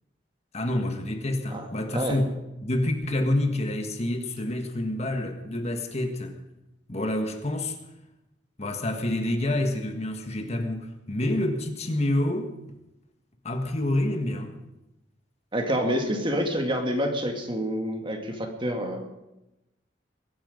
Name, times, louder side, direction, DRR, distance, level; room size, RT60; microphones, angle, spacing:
voice 1, 0.5-2.3 2.6-6.4 6.9-7.8 8.6-12.5 13.4-14.5, left 1 dB, 35° left, 1.5 m, -28 dB
voice 2, 15.5-19.0, equal, 30° right, 2.1 m, -27 dB
22.0 x 10.5 x 5.2 m
head